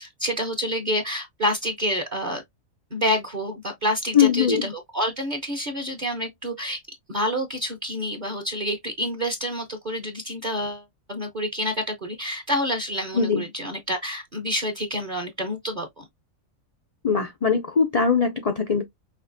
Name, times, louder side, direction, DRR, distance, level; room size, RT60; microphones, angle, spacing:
voice 1, 0.0-2.4 2.9-6.8 7.1-16.0, equal, 40° right, 0.9 m, -28 dB
voice 2, 4.1-4.7 13.1-13.4 17.0-18.8, left 6 dB, 65° left, 0.3 m, -21 dB
5.6 x 2.8 x 2.5 m
omnidirectional pair, 1.5 m